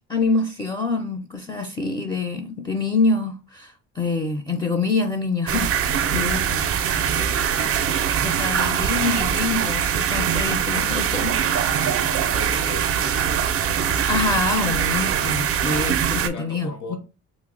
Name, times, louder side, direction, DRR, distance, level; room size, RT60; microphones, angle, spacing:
voice 1, 0.1-6.6 8.2-11.3 14.1-17.0, left 3 dB, 15° left, 0.4 m, -25 dB
sound 1, 5.5-16.3, right 8 dB, 50° right, 0.4 m, -22 dB
voice 2, 7.1-8.6 11.6-13.6 16.3-17.0, left 3 dB, 75° left, 0.8 m, -40 dB
2.7 x 2.0 x 3.7 m
cardioid pair, 90°, 30 cm